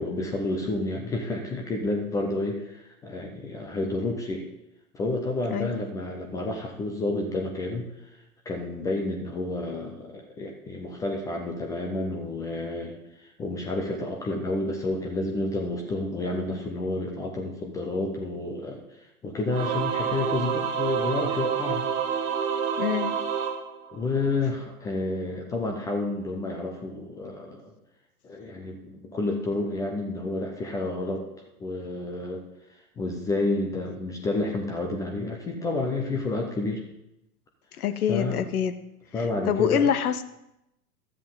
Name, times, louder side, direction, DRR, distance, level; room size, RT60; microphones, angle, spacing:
voice 1, 0.0-4.5 4.9-7.9 8.5-18.8 19.2-21.9 23.9-27.7 28.2-31.3 31.6-32.4 33.0-36.8 38.1-38.4 39.1-39.9, left 2 dB, 10° left, 1 dB, 0.4 m, -30 dB
voice 2, 5.5-5.8 22.8-23.2 37.8-38.7 39.2-40.2, left 8 dB, 65° left, 11 dB, 0.9 m, -26 dB
Singing / Musical instrument, 19.5-24.4, right 7 dB, 45° right, 1.2 m, -28 dB
12.5 x 7.5 x 3.8 m, 0.87 s
figure-of-eight pair, 100°, 48 cm